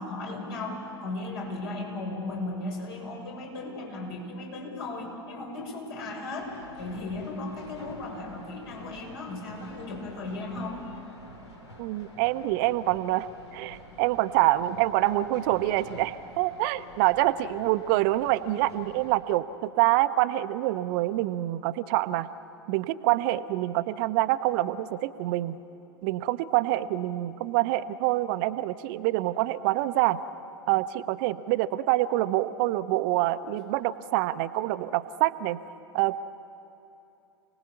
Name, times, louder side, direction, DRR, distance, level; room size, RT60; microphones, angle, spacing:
voice 1, 0.0-11.0, left 2 dB, 60° left, 0 dB, 6.7 m, -36 dB
sound 1, 6.4-19.2, equal, 85° left, 3.9 m, -49 dB
voice 2, 11.8-22.3 22.7-25.6 26.0-30.2 30.7-35.6 35.9-36.2, right 16 dB, 50° right, 12 dB, 0.8 m, -26 dB
29.5 x 19.0 x 7.2 m, 2.9 s
figure-of-eight pair, 90°, 14 cm